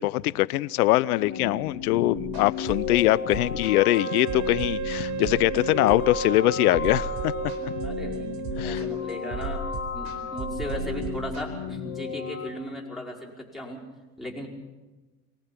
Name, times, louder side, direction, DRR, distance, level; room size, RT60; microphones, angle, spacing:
voice 1, 0.0-7.3 7.6-7.7 8.6-8.8, left 17 dB, 85° left, 20 dB, 0.7 m, -23 dB
sound 1, 1.2-12.5, left 6 dB, 40° left, 3.3 m, -34 dB
sound 2, 2.1-11.4, right 5 dB, 60° right, 4.3 m, -36 dB
Wind instrument woodwind instrument, 4.0-9.0, right 7 dB, 40° right, 0.9 m, -34 dB
voice 2, 7.8-9.7 9.9-13.8 14.2-14.5, left 1 dB, ahead, -4 dB, 5.1 m, -37 dB
23.5 x 19.5 x 5.9 m, 1.2 s
hypercardioid pair, 90°, 44 cm